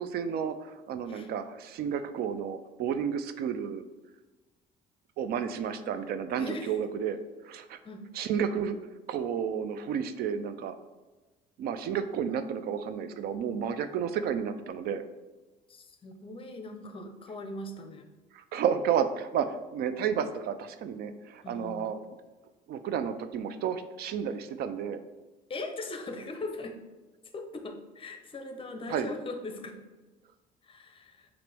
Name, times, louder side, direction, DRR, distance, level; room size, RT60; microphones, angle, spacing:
voice 1, 0.0-3.8 5.2-7.2 7.4-7.8 8.1-8.8 9.1-10.7 11.6-15.0 18.3-22.0 22.7-25.0 28.9-29.1, right 7 dB, 65° right, 10 dB, 0.4 m, -31 dB
voice 2, 6.4-6.8 7.8-8.1 15.7-18.1 21.4-21.9 25.5-26.8 27.3-29.8 30.6-31.3, left 2 dB, 30° left, 5 dB, 0.6 m, -40 dB
5.9 x 2.6 x 3.3 m, 1.2 s
cardioid pair, 110°, 17 cm